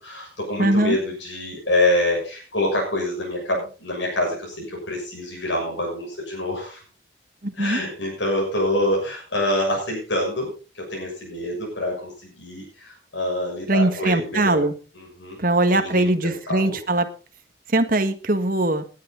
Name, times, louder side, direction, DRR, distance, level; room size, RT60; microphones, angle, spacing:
voice 1, 0.0-6.8 7.6-14.6 14.9-15.4 15.7-16.8, left 1 dB, 80° left, -2 dB, 6.8 m, -26 dB
voice 2, 0.6-1.0 7.4-7.8 13.7-14.7 15.4-17.1 17.7-18.8, right 2 dB, 45° right, 7 dB, 1.7 m, -21 dB
19.0 x 10.5 x 3.9 m, 0.35 s
head